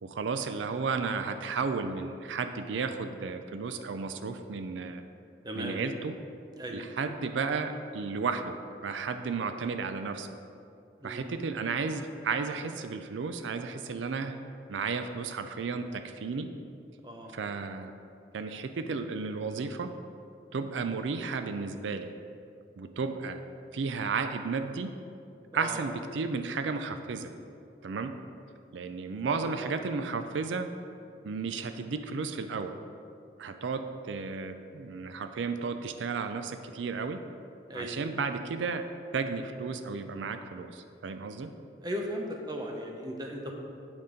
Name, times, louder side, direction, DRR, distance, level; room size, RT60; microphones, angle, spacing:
voice 1, 0.0-5.0 5.5-6.1 6.7-8.6 8.8-10.4 11.0-14.3 14.7-16.5 17.3-17.9 18.3-19.9 20.5-22.1 22.8-23.4 23.7-25.0 25.5-27.3 27.8-28.1 28.7-30.7 31.2-32.7 33.4-37.2 37.7-38.8 39.1-41.5, right 4 dB, 90° right, 8 dB, 0.4 m, -33 dB
voice 2, 5.4-5.8 6.6-6.8 11.0-11.2 17.0-17.3 25.5-25.8 29.3-29.7 37.7-38.0 41.8-43.5, equal, 20° right, 1 dB, 0.8 m, -37 dB
8.0 x 5.3 x 5.0 m, 2.5 s
head